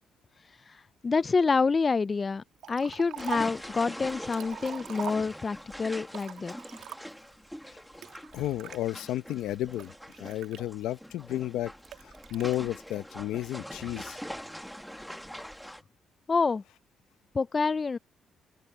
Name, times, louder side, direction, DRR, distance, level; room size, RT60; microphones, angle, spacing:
voice 1, 0.7-6.6 16.3-16.6 17.3-18.0, left 4 dB, 30° left, 0.3 m, -27 dB
Liquid, 2.6-3.6 4.1-5.6 6.1-7.3 8.0-8.8 9.4-11.1 11.8-12.6, right 10 dB, 80° right, 1.4 m, -42 dB
sound 1, 3.2-15.8, equal, ahead, 1.7 m, -43 dB
voice 2, 8.3-9.9 10.2-11.7 12.0-14.2, left 14 dB, 90° left, 0.7 m, -32 dB
open air
cardioid pair, 90°, 0 cm